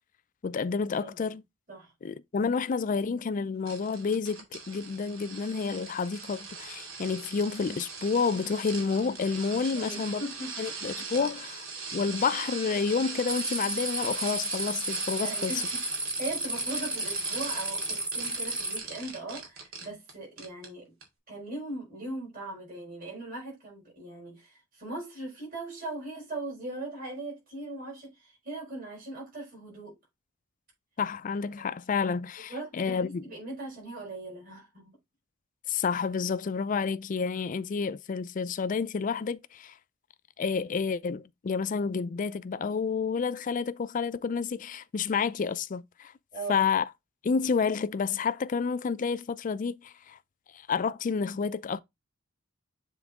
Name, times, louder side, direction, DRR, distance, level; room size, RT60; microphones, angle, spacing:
voice 1, 0.4-1.4 2.0-10.2 10.6-11.6 11.9-15.6 31.0-33.3 35.7-39.7 40.4-46.1 46.5-46.8 47.2-50.2 50.5-51.8, left 5 dB, 40° left, 0.4 m, -29 dB
voice 2, 1.0-1.4 1.7-1.9 9.6-10.6 11.1-11.3 15.2-15.8 16.2-20.9 21.3-29.9 32.5-34.9 46.3-46.7, right 2 dB, 45° right, 4.6 m, -39 dB
sound 1, 3.6-20.1 20.4-20.7 21.0-21.1, right 4 dB, 80° right, 2.4 m, -40 dB
sound 2, 13.3-18.8, right 1 dB, 5° right, 0.6 m, -33 dB
7.3 x 3.8 x 3.5 m
head